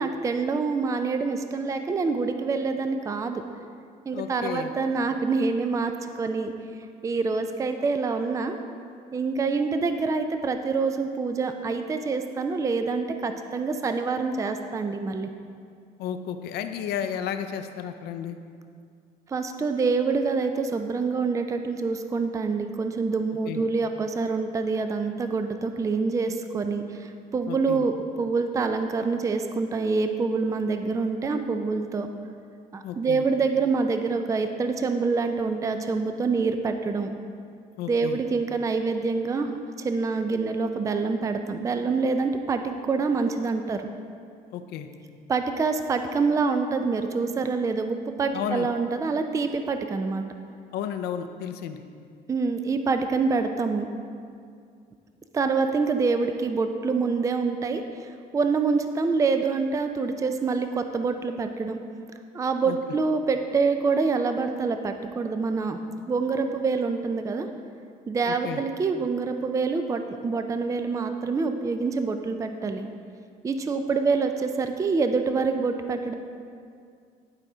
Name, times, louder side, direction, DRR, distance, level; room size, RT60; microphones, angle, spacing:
voice 1, 0.0-3.4 4.1-6.5 7.0-8.6 9.1-15.3 19.3-32.1 32.7-37.1 37.9-39.5 39.8-43.9 45.3-50.2 52.3-53.9 55.3-61.8 62.3-65.8 66.1-67.5 68.1-72.9 73.4-76.1, right 4 dB, 20° right, 7 dB, 0.4 m, -26 dB
voice 2, 4.1-4.7 16.0-18.4 23.5-23.6 27.5-27.8 32.8-33.2 37.8-38.2 44.5-44.9 48.3-48.7 50.7-51.8 62.6-62.8 68.3-68.6, left 9 dB, 75° left, 7 dB, 0.6 m, -32 dB
11.0 x 4.8 x 3.9 m, 2.3 s
cardioid pair, 110°, 17 cm